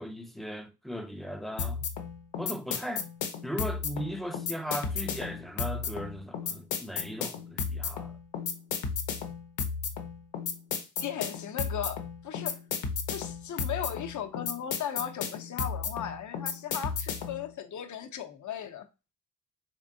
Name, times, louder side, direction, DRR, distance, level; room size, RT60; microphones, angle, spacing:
voice 1, 0.0-1.9 2.4-3.1 3.4-8.2, equal, ahead, 0.5 m, -37 dB
sound 1, 1.6-17.4, left 6 dB, 85° left, 0.8 m, -34 dB
voice 2, 11.0-12.6 13.1-18.9, left 9 dB, 45° left, 0.7 m, -37 dB
3.6 x 3.3 x 2.6 m
cardioid pair, 65°, 42 cm